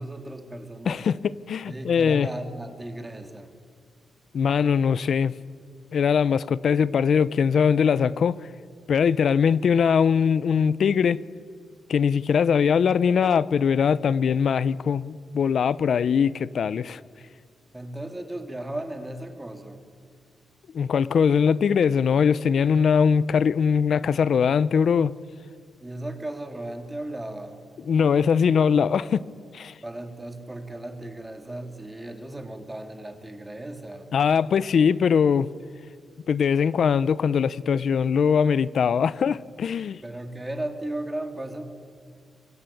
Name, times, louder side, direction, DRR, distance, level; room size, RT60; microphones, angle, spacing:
voice 1, 0.0-1.1 1.7-3.5 17.7-19.8 25.8-27.6 29.8-34.1 40.0-41.6, right 1 dB, 10° right, 3.0 m, -35 dB
voice 2, 0.9-2.3 4.3-5.3 5.9-8.4 8.9-11.2 11.9-17.0 20.7-25.1 27.9-29.2 29.5-29.8 34.1-35.5 36.3-40.0, left 7 dB, 60° left, 0.8 m, -21 dB
27.5 x 24.0 x 8.6 m
cardioid pair, 115°, 0 cm